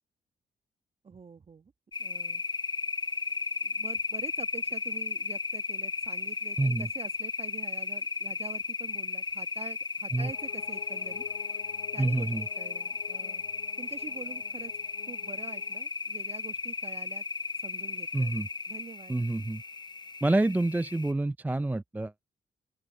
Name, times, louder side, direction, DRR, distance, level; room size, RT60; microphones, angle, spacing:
voice 1, 1.0-1.7 2.0-2.4 3.6-11.2 11.9-13.4 13.8-14.7 15.1-17.2 17.6-18.3 18.7-19.1, right 5 dB, 35° right, 1.3 m, -46 dB
sound 1, 1.9-21.1, left 4 dB, 25° left, 0.9 m, -35 dB
voice 2, 6.6-6.9 10.1-10.3 12.0-12.4 18.1-18.5 19.1-19.6 20.2-22.2, right 2 dB, 10° right, 0.4 m, -27 dB
sound 2, 10.2-15.8, left 16 dB, 75° left, 1.2 m, -50 dB
open air
hypercardioid pair, 45°, 17 cm